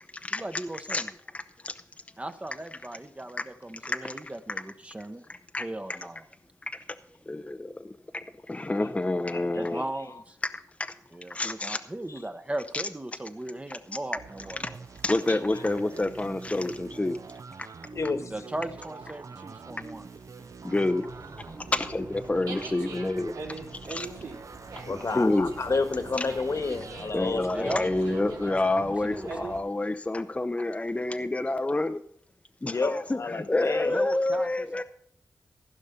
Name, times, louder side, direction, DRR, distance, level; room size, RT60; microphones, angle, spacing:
voice 1, 0.3-1.1 2.2-5.2 5.6-6.2 9.5-10.4 11.1-14.8 18.3-20.1 24.9-25.1 27.5-28.3 29.0-29.3 33.9-34.8, right 1 dB, 20° right, 9 dB, 0.8 m, -37 dB
voice 2, 1.3-1.7 3.8-4.1 5.5-5.7 7.3-7.7 8.5-9.8 11.3-11.8 12.7-12.8 15.0-17.2 20.6-21.1 21.7-23.3 23.9-24.1 24.9-25.5 26.2-26.3 27.1-32.0 32.6-34.8, left 2 dB, 20° left, 9 dB, 0.5 m, -28 dB
voice 3, 9.3-10.2 12.1-12.2 15.3-15.7 17.9-18.5 24.8-27.8 32.6-34.1, left 3 dB, 50° left, 9 dB, 1.4 m, -31 dB
sound 1, 14.2-28.9, right 5 dB, 55° right, 0.6 m, -45 dB
Dog, 21.1-29.6, right 3 dB, 85° right, 3.3 m, -43 dB
15.0 x 5.5 x 6.8 m, 0.64 s
wide cardioid pair, 75°, 6 cm